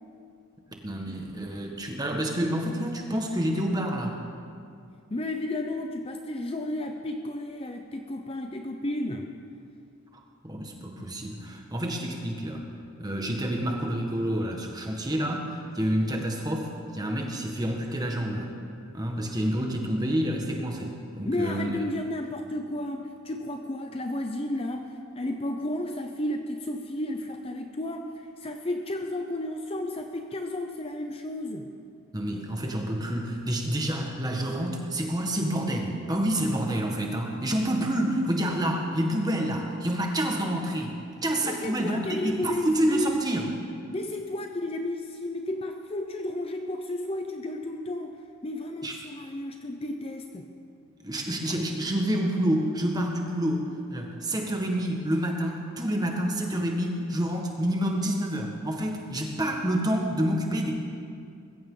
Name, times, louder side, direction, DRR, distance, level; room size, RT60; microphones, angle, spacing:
voice 1, 0.8-4.2 10.1-12.6 13.0-18.5 18.9-21.7 32.1-40.9 41.2-43.5 48.8-49.0 51.0-53.6 53.9-60.8, right 1 dB, 15° right, 1 dB, 1.5 m, -28 dB
voice 2, 5.1-9.3 21.2-24.9 25.1-28.1 28.4-31.7 41.4-43.1 43.9-50.5, left 1 dB, 25° left, 5 dB, 0.6 m, -32 dB
20.5 x 15.5 x 3.9 m, 2.4 s
head